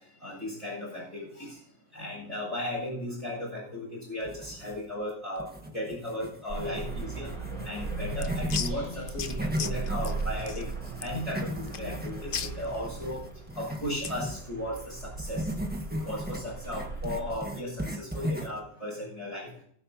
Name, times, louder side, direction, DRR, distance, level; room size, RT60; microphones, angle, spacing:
voice 1, 0.2-1.6 1.9-5.5 5.7-7.3 7.6-10.6 11.0-13.2 13.6-15.4 16.0-19.5, left 1 dB, 30° left, -8 dB, 6.7 m, -36 dB
sound 1, 4.2-5.0 5.4-8.7 9.1-14.5 15.2-18.7, equal, 5° right, 1.5 m, -37 dB
sound 2, 6.5-17.4, right 3 dB, 75° right, 4.7 m, -37 dB
sound 3, 7.7-14.3, left 7 dB, 50° left, 0.8 m, -39 dB
23.0 x 10.0 x 2.9 m, 0.66 s
omnidirectional pair, 1.3 m